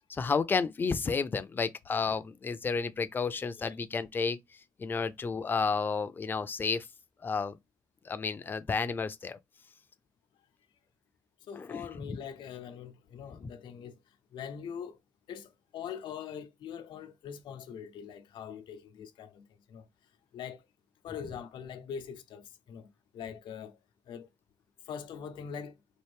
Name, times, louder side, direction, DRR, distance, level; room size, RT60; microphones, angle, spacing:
voice 1, 0.1-4.4 4.8-6.9 7.2-7.6 8.0-9.4 11.5-12.2, left 5 dB, 25° left, 0.4 m, -31 dB
voice 2, 11.4-14.0 14.3-15.0 15.3-19.9 20.3-20.7 21.0-23.8 24.1-24.3 24.9-25.8, left 7 dB, 90° left, 0.7 m, -43 dB
4.4 x 2.5 x 3.3 m
cardioid pair, 145°, 8 cm